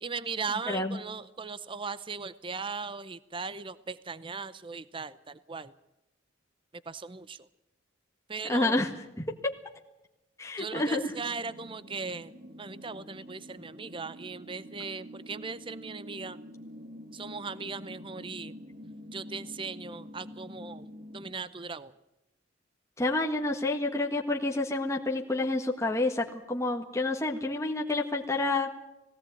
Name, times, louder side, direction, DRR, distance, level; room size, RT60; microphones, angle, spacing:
voice 1, 0.0-5.7 6.9-7.5 8.3-8.8 10.6-12.3 12.6-16.4 17.1-18.5 19.1-20.9 21.1-21.9, right 4 dB, 25° right, 16 dB, 0.7 m, -38 dB
voice 2, 0.7-1.0 8.5-8.9 9.2-9.3 10.4-11.1 23.0-28.7, left 2 dB, 15° left, 0 dB, 1.6 m, -29 dB
sound 1, 11.1-21.3, equal, 45° right, 2.2 m, -47 dB
19.5 x 17.5 x 9.1 m, 0.95 s
head